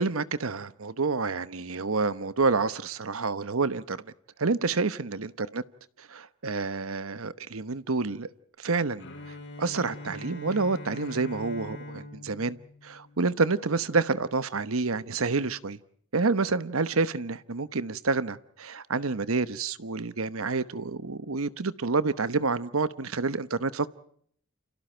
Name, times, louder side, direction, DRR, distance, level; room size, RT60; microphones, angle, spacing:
voice 1, 0.0-4.0 4.4-5.6 6.1-8.3 8.6-9.0 9.6-12.6 12.8-15.8 16.1-23.9, right 4 dB, 90° right, 1.0 m, -28 dB
Bowed string instrument, 9.0-13.8, left 2 dB, 60° left, 5.1 m, -43 dB
29.5 x 27.5 x 4.5 m
head